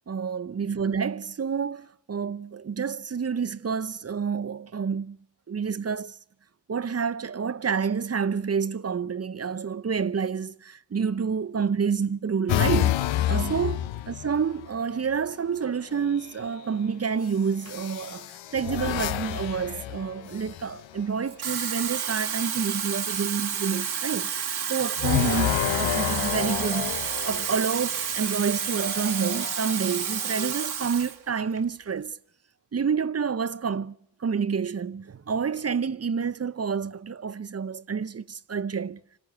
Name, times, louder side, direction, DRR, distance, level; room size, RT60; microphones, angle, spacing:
voice 1, 0.1-5.2 5.5-6.2 6.7-24.3 24.7-26.9 27.3-32.2 32.7-39.0, right 6 dB, 35° right, 0.8 m, -28 dB
sound 1, 12.5-14.7 16.0-16.5 17.6-21.0 25.0-27.9 28.7-30.5, left 13 dB, 85° left, 0.8 m, -29 dB
Water tap faucet / Fill (with liquid), 21.3-31.2 31.6-31.8, right 7 dB, 60° right, 1.6 m, -30 dB
26.0 x 15.5 x 9.3 m
cardioid pair, 75°, 44 cm